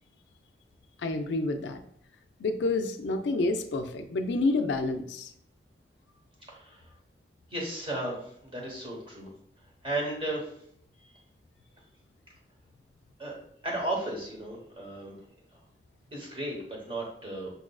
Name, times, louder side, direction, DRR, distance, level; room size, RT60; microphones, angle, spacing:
voice 1, 1.0-1.8 2.4-5.3, left 2 dB, 85° left, 7 dB, 0.4 m, -28 dB
voice 2, 6.4-6.8 7.5-9.3 9.8-10.5 11.0-11.1 13.2-13.3 13.6-15.1 16.1-17.5, right 1 dB, 30° right, -2 dB, 0.9 m, -34 dB
5.3 x 2.4 x 2.2 m, 0.67 s
head